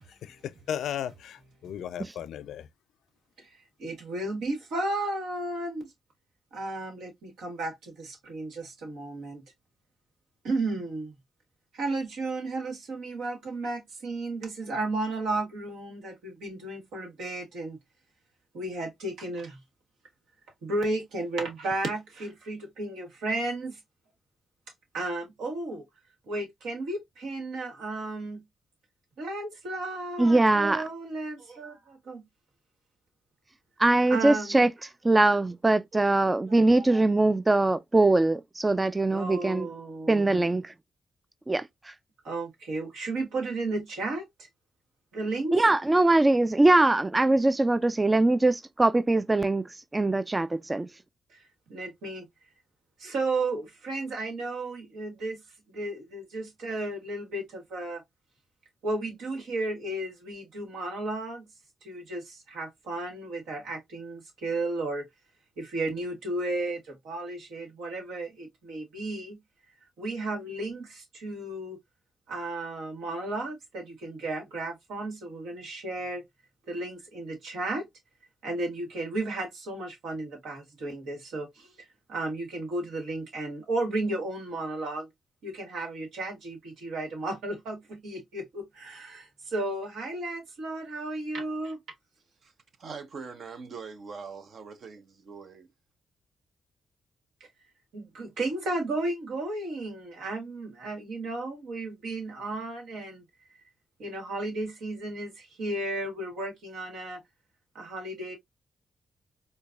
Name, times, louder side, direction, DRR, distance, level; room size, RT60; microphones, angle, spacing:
voice 1, 0.2-2.7, left 9 dB, 80° left, 0.3 m, -35 dB
voice 2, 3.8-5.9 6.5-9.4 10.4-11.1 11.7-17.8 18.5-19.6 20.6-23.8 24.9-25.8 26.3-28.4 29.2-32.2 34.1-34.6 35.9-36.0 36.9-37.0 39.1-40.4 42.2-44.5 45.1-45.5 51.3-51.4 51.7-52.3 53.0-55.4 55.7-58.0 58.8-61.5 61.8-65.1 65.6-69.4 70.0-71.8 72.3-76.2 76.7-77.9 78.4-85.1 85.4-91.8 97.9-103.2 104.0-107.2 107.7-108.3, right 2 dB, 80° right, 1.4 m, -33 dB
voice 3, 30.2-30.8 33.8-34.7 35.0-39.7 40.1-40.7 41.5-41.9 45.5-49.6 49.9-50.9, right 2 dB, 25° right, 0.3 m, -22 dB
voice 4, 92.8-95.7, right 5 dB, 65° right, 0.8 m, -42 dB
4.5 x 2.2 x 2.4 m
supercardioid pair, 50°, 0 cm